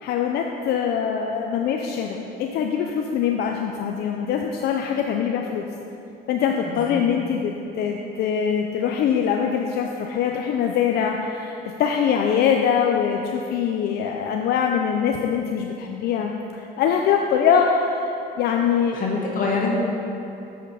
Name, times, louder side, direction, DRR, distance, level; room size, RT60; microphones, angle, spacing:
voice 1, 0.0-5.7 6.3-19.1, left 7 dB, 70° left, 2 dB, 0.6 m, -23 dB
voice 2, 6.7-7.0 18.9-19.7, left 4 dB, 55° left, -2 dB, 1.9 m, -25 dB
8.7 x 6.6 x 5.6 m, 2.8 s
cardioid pair, 110°, 17 cm